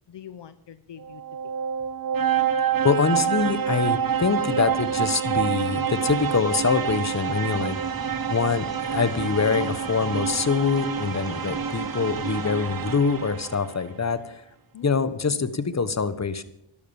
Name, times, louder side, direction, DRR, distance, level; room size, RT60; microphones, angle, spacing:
voice 1, 0.1-1.5 14.7-15.5, left 9 dB, 60° left, 12 dB, 0.8 m, -45 dB
sound 1, 1.0-13.8, right 8 dB, 45° right, 1.0 m, -27 dB
voice 2, 2.8-7.8 8.3-14.4 14.8-16.4, left 5 dB, 35° left, 14 dB, 1.3 m, -24 dB
sound 2, 5.9-12.5, equal, 5° left, 3.5 m, -48 dB
12.5 x 12.5 x 7.1 m, 0.78 s
cardioid pair, 65°, 48 cm